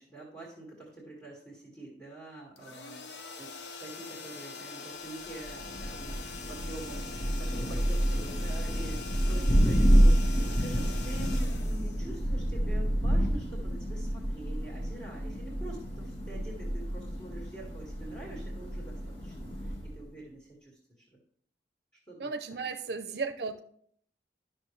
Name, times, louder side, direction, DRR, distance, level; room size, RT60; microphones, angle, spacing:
voice 1, 0.0-20.8 21.1-21.2 22.1-22.3, right 1 dB, 15° left, -4 dB, 2.0 m, -46 dB
sound 1, 2.6-12.5, left 5 dB, 85° left, 0.9 m, -43 dB
Thunder, 5.4-20.0, equal, 30° left, 1.6 m, -28 dB
voice 2, 22.2-23.6, right 4 dB, 70° right, 8 dB, 0.6 m, -35 dB
11.0 x 6.4 x 3.2 m, 0.63 s
head